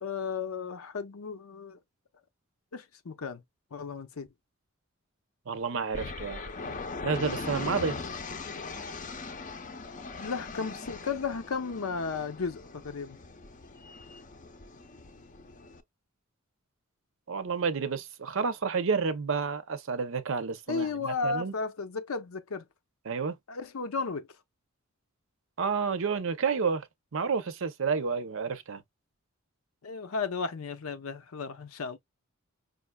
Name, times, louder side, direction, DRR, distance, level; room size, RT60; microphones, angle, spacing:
voice 1, 0.0-1.8 2.7-3.4 3.7-4.3 10.2-13.2 20.7-22.6 23.5-24.3 29.8-32.0, left 4 dB, 85° left, 0.7 m, -34 dB
voice 2, 5.5-6.4 7.0-8.0 17.3-21.5 23.1-23.3 25.6-26.9 27.1-28.8, right 5 dB, 70° right, 0.7 m, -30 dB
sound 1, 5.9-15.8, left 3 dB, 40° left, 0.6 m, -40 dB
5.1 x 2.4 x 2.2 m
head